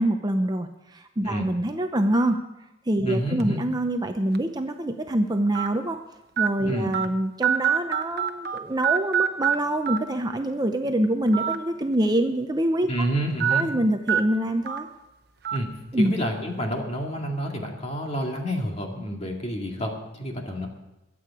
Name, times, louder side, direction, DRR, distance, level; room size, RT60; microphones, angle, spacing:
voice 1, 0.0-2.4 2.9-6.0 6.4-13.1 13.5-14.9 15.9-16.2, right 1 dB, 20° right, 6 dB, 0.6 m, -25 dB
voice 2, 3.1-3.6 6.7-6.9 12.9-13.7 15.5-15.7 16.0-20.7, equal, 30° left, 1 dB, 2.2 m, -29 dB
sound 1, 3.4-3.6 4.3-4.4 5.5-5.7 6.4-6.5 6.9-7.0 7.4-8.6 8.8-9.5 9.9-10.0 11.3-11.5 11.9-12.0 13.4-13.6 14.1-14.2 14.7-14.8 15.4-15.6, right 9 dB, 50° right, 0.9 m, -23 dB
22.5 x 8.5 x 4.8 m, 0.95 s
head